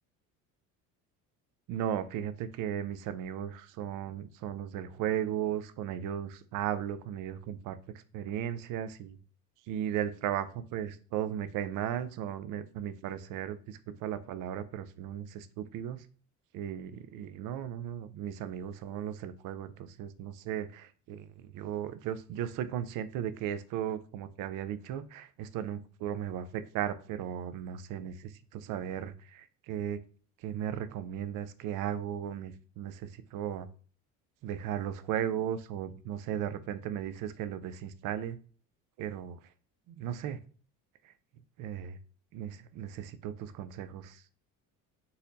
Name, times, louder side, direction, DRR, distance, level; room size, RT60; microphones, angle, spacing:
voice 1, 1.7-7.8 8.1-9.2 9.7-16.1 16.5-30.0 30.4-33.7 34.4-38.4 39.0-39.4 39.9-40.4 41.0-41.1 41.6-42.0 42.3-44.2, right 10 dB, 65° right, 13 dB, 0.5 m, -36 dB
4.0 x 2.7 x 2.6 m, 0.41 s
supercardioid pair, 95°, 35 cm